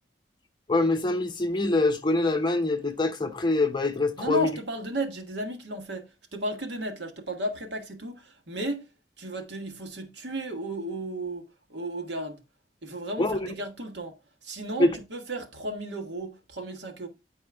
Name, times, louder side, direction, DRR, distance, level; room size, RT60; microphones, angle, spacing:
voice 1, 0.7-4.5 13.2-13.4 14.8-14.9, left 2 dB, 25° left, 0.8 m, -24 dB
voice 2, 4.2-8.9 9.2-12.4 12.8-17.1, right 1 dB, 80° right, 1.5 m, -34 dB
9.3 x 4.3 x 3.4 m
head